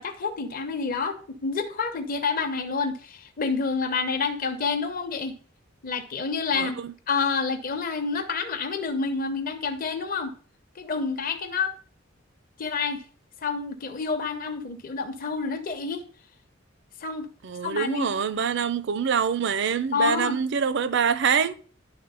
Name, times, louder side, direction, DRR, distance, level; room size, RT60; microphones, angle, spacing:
voice 1, 0.0-5.4 5.8-6.8 7.1-10.3 10.8-11.7 12.6-13.0 13.4-16.0 17.0-17.3 17.6-18.1 19.9-20.4, left 5 dB, 45° left, 0.8 m, -28 dB
voice 2, 6.5-6.9 17.4-21.5, right 6 dB, 60° right, 0.5 m, -25 dB
10.5 x 3.6 x 5.4 m
head